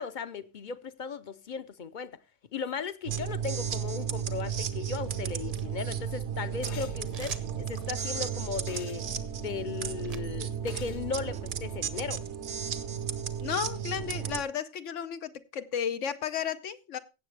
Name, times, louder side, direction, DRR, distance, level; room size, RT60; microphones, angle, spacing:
voice 1, 0.0-2.2 2.5-9.0 9.4-12.2, left 5 dB, 50° left, 0.7 m, -37 dB
sound 1, 3.1-14.4, right 8 dB, 70° right, 1.1 m, -34 dB
sound 2, 4.3-4.9 5.2-6.5 7.1-10.4 10.6-11.5, right 5 dB, 35° right, 0.7 m, -50 dB
sound 3, 6.6-7.0 8.7-9.0 10.7-11.0, left 8 dB, 70° left, 1.1 m, -46 dB
voice 2, 13.4-17.0, left 8 dB, 90° left, 1.2 m, -33 dB
16.5 x 7.4 x 3.3 m
omnidirectional pair, 1.2 m